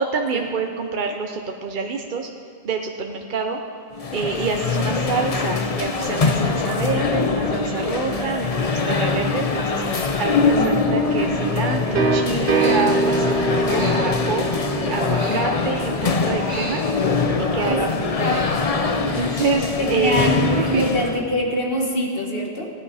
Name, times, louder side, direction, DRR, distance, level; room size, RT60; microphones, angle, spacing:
voice 1, 0.0-2.3 2.6-3.6 4.1-14.5 14.9-16.0 16.2-16.8 17.4-17.9 18.2-18.4 19.0-20.8, right 4 dB, 55° right, 3 dB, 0.9 m, -27 dB
sound 1, 3.9-21.3, left 4 dB, 40° left, 0.8 m, -23 dB
sound 2, 10.9-16.6, right 3 dB, 85° right, 1.1 m, -25 dB
Human voice, 12.3-13.2 13.5-15.9 16.2-17.5 17.8-19.6 19.9-20.3, equal, 25° left, 4.4 m, -35 dB
voice 2, 19.8-22.7, equal, 65° left, -1 dB, 2.0 m, -24 dB
17.0 x 11.0 x 4.9 m, 2.3 s
omnidirectional pair, 1.0 m